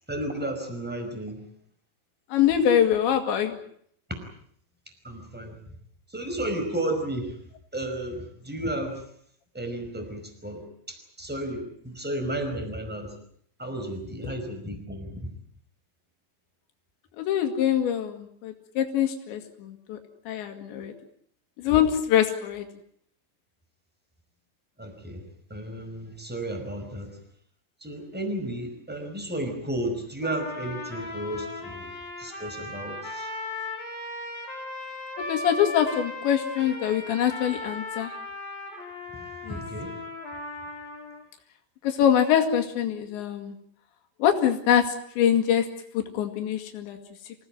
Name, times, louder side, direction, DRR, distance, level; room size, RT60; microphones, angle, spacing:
voice 1, 0.1-1.4 5.0-5.6 6.1-7.3 7.7-9.0 9.5-13.1 13.6-15.3 24.8-25.2 25.5-27.1 27.8-31.9 32.2-33.3 39.5-39.9, right 1 dB, ahead, 5 dB, 4.7 m, -33 dB
voice 2, 2.3-3.6 14.2-14.3 17.2-20.0 20.3-20.9 21.6-22.7 35.3-38.1 39.5-39.6 41.8-43.5 44.2-44.8 45.2-45.7 45.9-47.0, left 9 dB, 85° left, 4 dB, 4.2 m, -24 dB
sound 1, 30.2-41.2, left 2 dB, 55° left, 7.2 m, -37 dB
27.0 x 17.0 x 9.1 m, 0.66 s
omnidirectional pair, 5.1 m